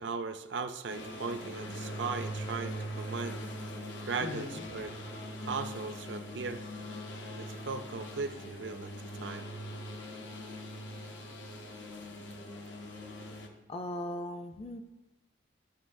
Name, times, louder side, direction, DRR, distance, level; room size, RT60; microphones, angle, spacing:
voice 1, 0.0-3.4 4.0-4.9 5.4-6.6 7.4-8.9 9.2-9.5, right 4 dB, 70° right, 8 dB, 0.5 m, -37 dB
sound 1, 0.9-13.5, equal, 80° left, 0.9 m, -42 dB
voice 2, 4.2-4.7 13.7-14.8, left 1 dB, 30° left, 8 dB, 0.4 m, -38 dB
11.5 x 6.2 x 2.6 m, 1.0 s
head